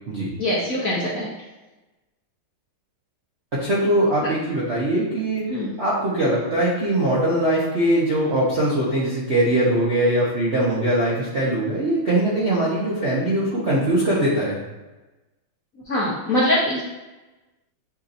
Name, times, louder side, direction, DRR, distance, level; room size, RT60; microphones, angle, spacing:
voice 1, 0.4-1.3 4.2-4.3 5.5-5.7 15.9-16.8, left 1 dB, 60° left, -7 dB, 0.9 m, -23 dB
voice 2, 3.5-5.4 5.8-14.6, right 1 dB, 55° right, -8 dB, 0.7 m, -21 dB
7.0 x 2.7 x 2.5 m, 1.1 s
omnidirectional pair, 2.4 m